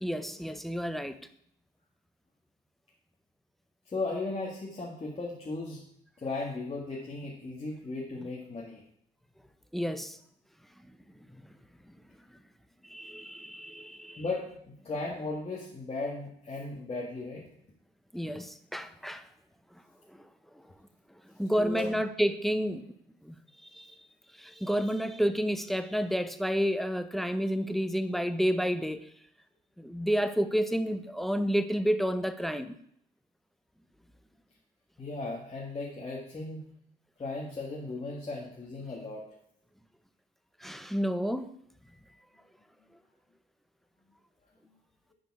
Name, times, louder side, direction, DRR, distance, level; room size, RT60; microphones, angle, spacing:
voice 1, 0.0-1.2 9.7-10.2 12.8-14.2 18.1-19.2 20.1-20.3 21.4-22.9 23.2-23.4 23.7-23.9 24.4-29.1 29.8-32.8 40.6-41.6, equal, ahead, 0.7 m, -30 dB
voice 2, 3.9-5.8 6.2-8.8 14.2-17.4 21.6-22.0 35.0-36.6 37.2-39.3 44.6-44.7, left 3 dB, 30° left, 1.9 m, -36 dB
10.5 x 5.1 x 4.8 m
cardioid pair, 90°, 20 cm